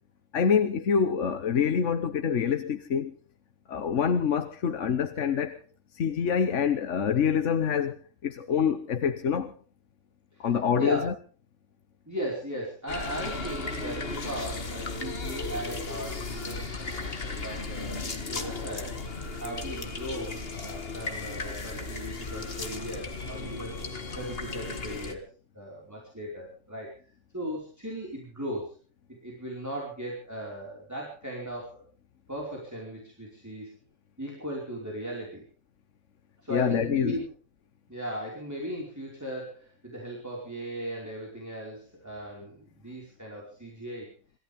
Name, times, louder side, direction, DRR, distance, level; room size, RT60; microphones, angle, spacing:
voice 1, 0.3-3.1 3.7-5.6 5.9-9.5 10.4-11.1 36.5-37.1, left 7 dB, 75° left, 1.4 m, -26 dB
voice 2, 10.3-11.1 12.1-19.1 19.4-23.8 24.1-25.2 25.5-26.9 27.3-28.7 29.2-31.8 32.3-33.7 34.2-35.4 36.4-37.2 37.9-44.1, right 1 dB, 15° right, 4.9 m, -37 dB
sound 1, 12.9-25.1, left 3 dB, 50° left, 2.0 m, -35 dB
26.5 x 15.0 x 3.6 m
omnidirectional pair, 1.3 m